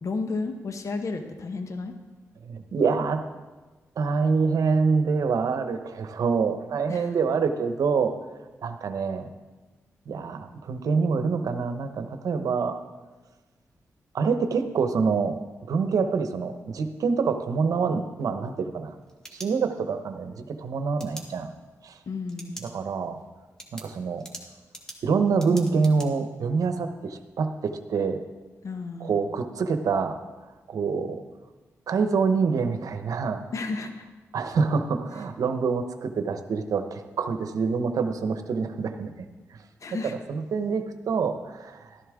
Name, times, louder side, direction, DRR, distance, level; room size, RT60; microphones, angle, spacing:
voice 1, 0.0-1.9 6.9-7.1 22.1-22.6 28.6-29.2 33.5-34.1 39.8-40.2, left 3 dB, 60° left, 7 dB, 1.0 m, -32 dB
voice 2, 2.4-3.2 4.0-8.1 8.6-9.3 10.1-12.8 14.1-15.4 15.7-18.9 19.3-21.5 21.8-21.9 22.6-23.2 23.7-24.2 25.0-28.2 29.0-30.2 30.7-31.2 31.9-33.4 34.3-39.1 40.0-42.0, right 5 dB, 75° right, 8 dB, 0.9 m, -26 dB
sound 1, 18.9-20.0 21.0-21.2 22.3-22.7 23.1-23.2 23.6-26.1, right 1 dB, 10° left, 2.1 m, -43 dB
12.5 x 11.0 x 3.6 m, 1.3 s
cardioid pair, 55°, 6 cm